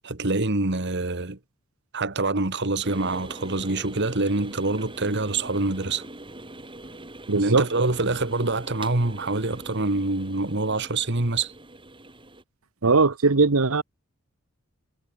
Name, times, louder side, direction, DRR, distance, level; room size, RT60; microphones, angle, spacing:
voice 1, 0.0-1.4 1.9-6.0 7.4-11.5, right 2 dB, 55° right, 1.9 m, -25 dB
sound 1, 2.8-12.4, right 2 dB, 25° right, 5.2 m, -43 dB
voice 2, 7.3-7.9 12.8-13.8, right 4 dB, 80° right, 1.1 m, -20 dB
head